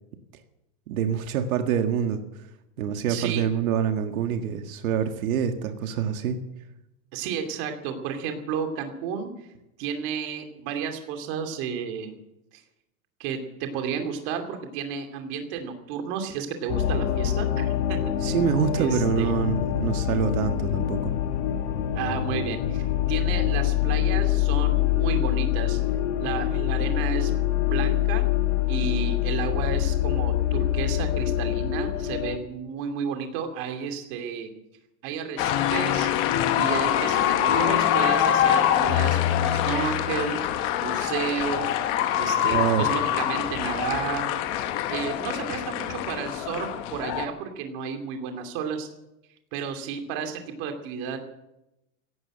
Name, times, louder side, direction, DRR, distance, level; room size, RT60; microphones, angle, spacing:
voice 1, 0.9-2.2 2.8-6.4 18.2-21.1 42.5-42.9, right 8 dB, 85° right, 6 dB, 1.9 m, -26 dB
voice 2, 3.1-3.4 7.1-9.3 9.8-12.2 12.5-12.6 13.2-18.0 18.3-18.4 18.8-19.3 21.9-25.8 26.2-27.3 27.6-28.3 28.7-34.5 35.0-36.1 36.6-40.4 40.8-41.7 42.1-44.3 44.9-48.9 49.5-51.2, right 7 dB, 40° right, 5 dB, 2.6 m, -32 dB
sound 1, 16.7-32.4, left 12 dB, 60° left, 1.6 m, -25 dB
sound 2, 35.4-47.3, left 11 dB, 30° left, 1.0 m, -24 dB
17.0 x 11.0 x 7.7 m, 0.89 s
supercardioid pair, 175°, 41 cm